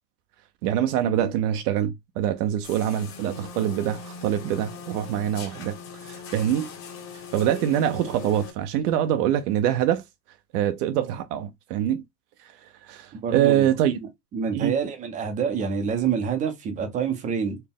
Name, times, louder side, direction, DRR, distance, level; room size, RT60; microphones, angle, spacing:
voice 1, 0.6-5.7 6.0-6.7 7.3-10.0 10.5-12.0 12.8-14.0 14.5-14.8, right 10 dB, 70° right, 0.6 m, -24 dB
sound 1, 2.6-8.5, left 5 dB, 25° left, 0.8 m, -40 dB
voice 2, 13.2-13.7 14.3-17.6, right 6 dB, 15° right, 0.5 m, -27 dB
4.3 x 2.1 x 3.5 m
supercardioid pair, 150°, 49 cm